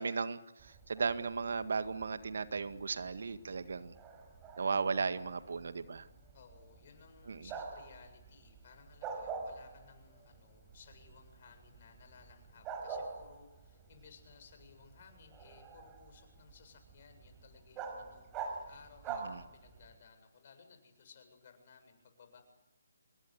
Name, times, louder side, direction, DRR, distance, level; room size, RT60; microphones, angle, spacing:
voice 1, 0.0-4.0 4.6-6.1 7.3-7.4 19.2-19.4, right 5 dB, 60° right, 11 dB, 1.8 m, -36 dB
Bark, 0.6-20.0, right 5 dB, 20° right, 6.0 m, -47 dB
voice 2, 6.3-22.4, left 6 dB, 45° left, 7 dB, 7.6 m, -59 dB
27.5 x 23.0 x 8.2 m, 0.86 s
figure-of-eight pair, 145°, 0 cm